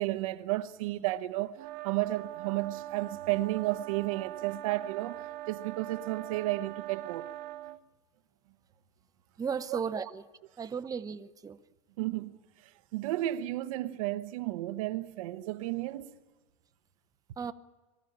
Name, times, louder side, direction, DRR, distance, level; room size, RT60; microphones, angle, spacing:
voice 1, 0.0-1.6 1.8-7.3 9.7-9.8 12.0-16.1, right 17 dB, 75° right, 1.0 m, -33 dB
sound 1, 1.6-7.8, right 14 dB, 55° right, 0.7 m, -42 dB
voice 2, 9.4-10.2 10.6-11.6 17.4-17.5, right 6 dB, 20° right, 0.8 m, -35 dB
23.0 x 13.5 x 8.7 m
hypercardioid pair, 95°, 18 cm